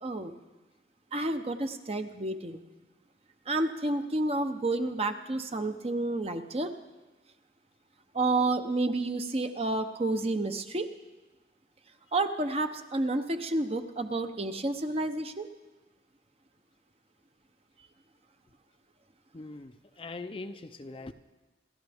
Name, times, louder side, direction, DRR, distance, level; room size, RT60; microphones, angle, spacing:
voice 1, 0.0-0.3 1.1-2.6 3.5-6.7 8.1-10.9 12.1-15.5, right 2 dB, 30° right, 7 dB, 0.8 m, -30 dB
voice 2, 19.3-21.1, left 3 dB, 30° left, 9 dB, 0.5 m, -42 dB
28.5 x 13.0 x 3.5 m, 1.1 s
head